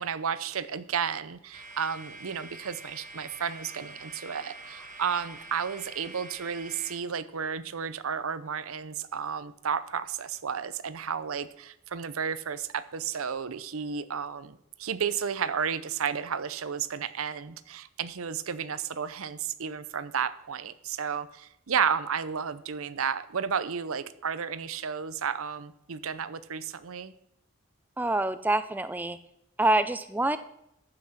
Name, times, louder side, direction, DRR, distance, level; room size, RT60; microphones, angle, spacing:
voice 1, 0.0-27.1, right 7 dB, 80° right, 14 dB, 0.6 m, -32 dB
sound 1, 1.5-7.0, right 2 dB, 35° right, 1.7 m, -46 dB
voice 2, 28.0-29.2 29.6-30.4, right 2 dB, 10° right, 12 dB, 0.4 m, -26 dB
14.0 x 6.0 x 5.7 m, 0.80 s
head